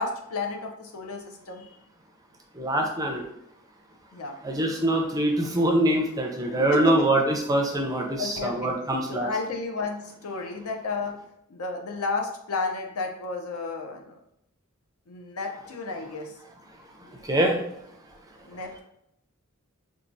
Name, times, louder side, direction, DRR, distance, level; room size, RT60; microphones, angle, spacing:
voice 1, 0.0-1.7 4.1-4.4 6.5-7.2 8.1-8.7 9.1-11.1 11.5-14.2 15.1-16.3 18.4-18.8, left 3 dB, 85° left, 3 dB, 0.6 m, -32 dB
voice 2, 2.6-3.2 4.4-9.3 17.3-17.6, right 1 dB, 15° right, 2 dB, 0.4 m, -24 dB
4.5 x 2.3 x 2.6 m, 0.78 s
head